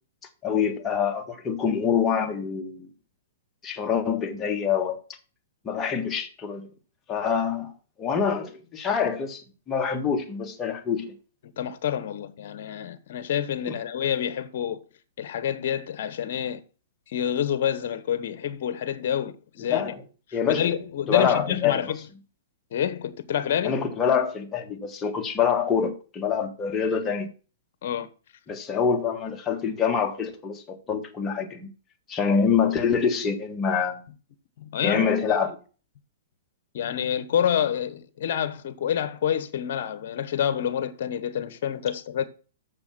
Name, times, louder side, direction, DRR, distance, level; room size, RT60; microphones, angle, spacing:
voice 1, 0.4-2.9 3.6-5.0 5.6-6.7 7.1-7.7 8.0-11.1 13.7-13.8 19.7-20.0 20.3-20.7 21.1-21.8 23.6-27.3 28.5-31.7 32.1-34.0 34.8-35.6, left 6 dB, 20° left, 1.6 m, -25 dB
voice 2, 11.6-14.8 15.2-16.6 17.1-19.9 20.3-22.0 22.7-23.8 27.8-28.1 34.6-35.1 36.7-42.2, left 9 dB, 60° left, 1.0 m, -28 dB
7.0 x 6.8 x 5.8 m
hypercardioid pair, 130°, 0 cm